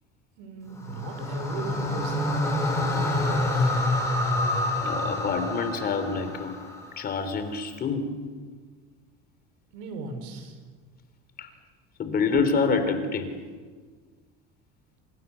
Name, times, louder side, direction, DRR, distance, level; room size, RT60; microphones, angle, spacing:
voice 1, 0.4-2.4 2.9-3.8 9.7-10.6, right 4 dB, 85° right, 7 dB, 5.7 m, -37 dB
sound 1, 0.7-7.0, left 1 dB, 10° left, 5.9 m, -27 dB
voice 2, 4.8-6.5 7.0-8.2 11.4-11.5 12.0-13.4, left 4 dB, 30° left, 8 dB, 3.3 m, -27 dB
28.0 x 27.5 x 6.9 m, 1.5 s
cardioid pair, 165°, 29 cm